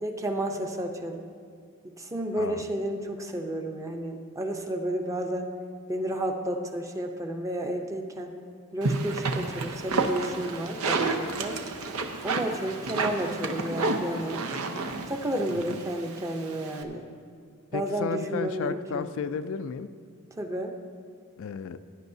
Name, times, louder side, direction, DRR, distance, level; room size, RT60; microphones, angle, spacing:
voice 1, 0.0-1.2 2.0-5.5 5.9-8.3 8.7-11.6 12.2-14.4 15.1-17.1 17.7-19.1 20.4-20.7, right 1 dB, 15° right, 3 dB, 0.7 m, -31 dB
sound 1, 8.8-16.8, right 3 dB, 85° right, 0.8 m, -30 dB
voice 2, 17.7-19.9 21.4-21.8, left 6 dB, 65° left, 11 dB, 0.4 m, -33 dB
17.5 x 9.6 x 2.7 m, 2.2 s
head